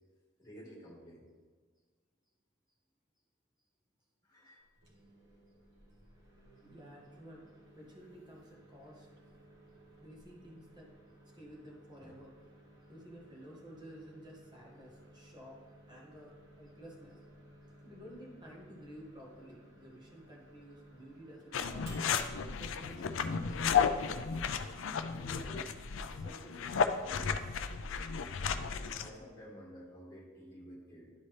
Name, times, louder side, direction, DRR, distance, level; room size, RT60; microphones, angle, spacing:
voice 1, 0.4-1.3 4.2-4.6 28.6-31.1, equal, 20° left, -5 dB, 1.9 m, -52 dB
Microwave oven, 4.6-23.4, right 1 dB, 60° right, 1.7 m, -59 dB
voice 2, 6.6-9.1 10.0-10.9 11.3-12.4 12.9-17.2 17.8-22.0 22.6-24.5 25.1-27.5, equal, 20° right, -3 dB, 1.5 m, -53 dB
sound 1, 21.5-29.1, left 6 dB, 65° left, 0.4 m, -33 dB
11.5 x 4.2 x 3.2 m, 1.5 s
head